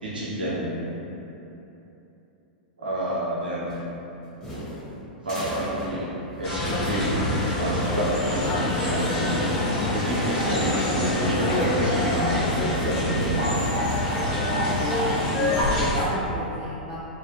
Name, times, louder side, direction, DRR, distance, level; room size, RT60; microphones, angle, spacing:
voice 1, 0.0-0.8 2.8-3.8 5.2-9.5 9.9-13.4, right 1 dB, 90° right, -7 dB, 0.7 m, -28 dB
sound 1, 3.7-8.1, equal, 20° left, 1.0 m, -37 dB
sound 2, 6.4-16.0, left 1 dB, 55° left, 1.2 m, -27 dB
sound 3, 6.6-15.9, left 2 dB, 35° left, 0.4 m, -29 dB
voice 2, 15.1-17.0, right 1 dB, 20° right, -11 dB, 0.5 m, -35 dB
2.6 x 2.3 x 2.6 m, 3.0 s
hypercardioid pair, 105°, 5 cm